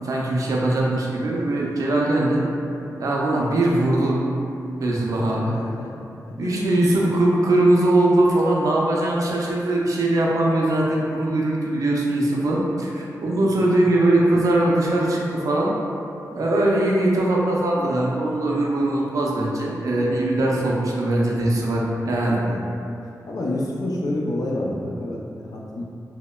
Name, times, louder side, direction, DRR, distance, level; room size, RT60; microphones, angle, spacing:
voice 1, 0.0-2.4 3.0-4.2 4.8-5.6 6.4-15.7 16.3-22.4, right 1 dB, 60° right, -3 dB, 0.4 m, -21 dB
voice 2, 5.4-5.9 6.4-6.9 13.4-13.8 20.6-20.7 22.1-22.7 23.2-25.8, left 1 dB, 70° left, -3 dB, 0.4 m, -29 dB
2.9 x 2.0 x 2.2 m, 2.7 s
wide cardioid pair, 145°, 7 cm